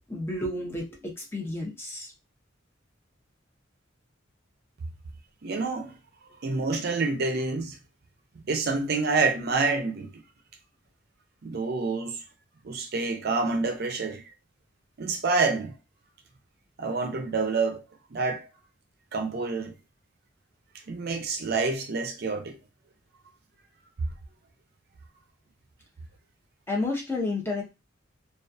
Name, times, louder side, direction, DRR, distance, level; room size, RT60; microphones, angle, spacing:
voice 1, 0.1-2.1 26.7-27.6, left 2 dB, 15° left, 0.7 m, -31 dB
voice 2, 5.4-6.0 6.4-7.8 8.5-10.2 11.4-12.2 12.6-14.2 15.0-15.8 16.8-17.8 18.1-18.5 19.1-19.7 20.9-22.6, right 3 dB, 55° right, 0.5 m, -27 dB
2.3 x 2.3 x 2.5 m
head